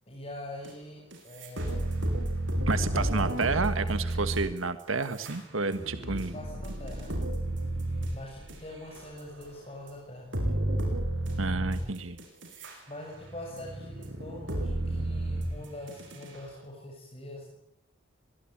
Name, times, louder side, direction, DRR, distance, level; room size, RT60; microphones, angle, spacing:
voice 1, 0.1-1.8 2.8-4.1 5.9-7.1 8.1-10.9 12.9-17.5, left 1 dB, 30° left, -1 dB, 6.8 m, -44 dB
sound 1, 0.6-0.7 1.1-9.4 9.9-10.0 10.3-12.7 13.1-16.4, right 1 dB, 65° right, 7.8 m, -32 dB
voice 2, 2.7-6.3 11.4-12.2, right 3 dB, 85° right, 10 dB, 1.6 m, -30 dB
25.0 x 21.5 x 8.7 m, 0.78 s
head